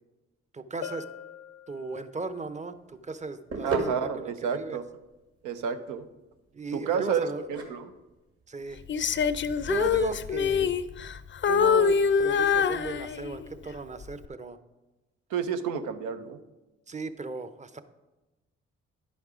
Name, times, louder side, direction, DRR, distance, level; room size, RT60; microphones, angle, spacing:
voice 1, 0.5-1.1 1.7-4.8 6.5-7.4 8.5-8.8 9.7-10.7 11.5-14.6 16.9-17.8, right 3 dB, 25° right, 12 dB, 0.7 m, -36 dB
Bell, 0.8-2.4, left 9 dB, 80° left, 0.7 m, -42 dB
sound 1, 2.2-10.1, right 3 dB, 50° right, 2.1 m, -38 dB
voice 2, 3.6-4.8 5.4-6.1 6.7-7.9 15.3-16.4, right 7 dB, 80° right, 9 dB, 0.8 m, -30 dB
Female singing, 8.9-11.2 11.4-13.5 14.0-14.3, left 6 dB, 40° left, 0.5 m, -25 dB
10.5 x 5.3 x 4.9 m, 1.1 s
supercardioid pair, 55°, 30 cm